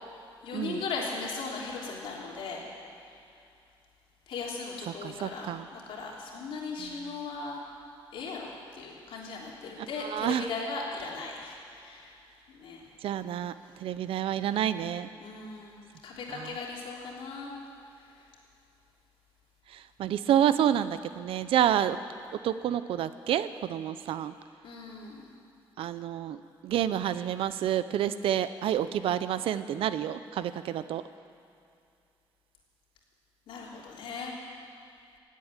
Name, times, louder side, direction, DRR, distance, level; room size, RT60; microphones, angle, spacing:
voice 1, 0.4-2.6 4.3-7.6 8.1-8.5 8.7-12.1 12.6-12.8 15.2-15.8 16.0-17.5 24.6-25.3 33.5-34.3, left 4 dB, 75° left, -3 dB, 3.4 m, -38 dB
voice 2, 4.9-5.7 6.8-6.9 9.8-10.5 13.0-13.5 13.8-15.1 16.3-16.6 20.0-22.0 22.4-24.3 25.8-26.4 26.6-31.0, right 10 dB, 85° right, 13 dB, 0.6 m, -29 dB
16.0 x 8.6 x 9.8 m, 2.5 s
wide cardioid pair, 175°, 9 cm